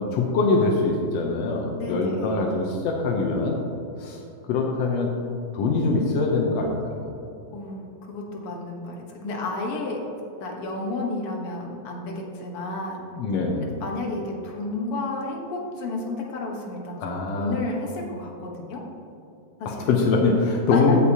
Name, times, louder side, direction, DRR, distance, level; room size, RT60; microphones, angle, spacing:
voice 1, 0.0-3.6 4.0-4.2 4.5-5.1 5.5-7.1 13.1-13.7 17.0-17.6 19.9-21.0, left 3 dB, 80° left, 0 dB, 1.4 m, -23 dB
voice 2, 1.8-2.3 7.5-10.0 10.4-13.0 13.8-18.8 19.6-20.0 20.7-21.0, left 2 dB, 60° left, -1 dB, 1.6 m, -31 dB
15.5 x 6.5 x 2.8 m, 2.8 s
omnidirectional pair, 4.0 m